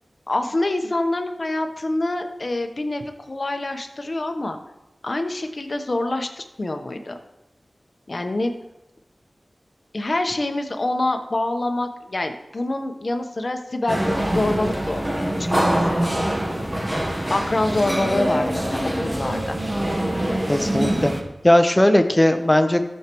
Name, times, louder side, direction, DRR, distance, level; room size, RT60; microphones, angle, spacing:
voice 1, 0.3-4.6 5.0-7.2 8.1-8.6 9.9-14.0 14.3-16.1 17.3-19.6, left 2 dB, 50° left, 5 dB, 0.9 m, -26 dB
sound 1, 13.9-21.2, right 1 dB, 20° right, 1.1 m, -24 dB
voice 2, 20.5-21.1 21.4-22.8, left 1 dB, 15° left, 6 dB, 0.9 m, -17 dB
14.0 x 6.5 x 3.0 m, 0.94 s
wide cardioid pair, 75°, 0 cm